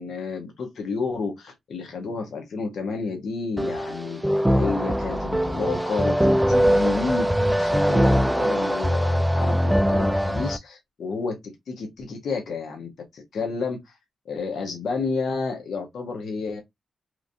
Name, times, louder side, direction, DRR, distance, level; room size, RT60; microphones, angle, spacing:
voice 1, 0.0-4.2 4.6-14.0 14.3-16.6, left 4 dB, 75° left, 0.9 m, -30 dB
sound 1, 3.6-10.6, equal, 5° right, 0.4 m, -22 dB
3.0 x 2.6 x 2.5 m
supercardioid pair, 50°, 0 cm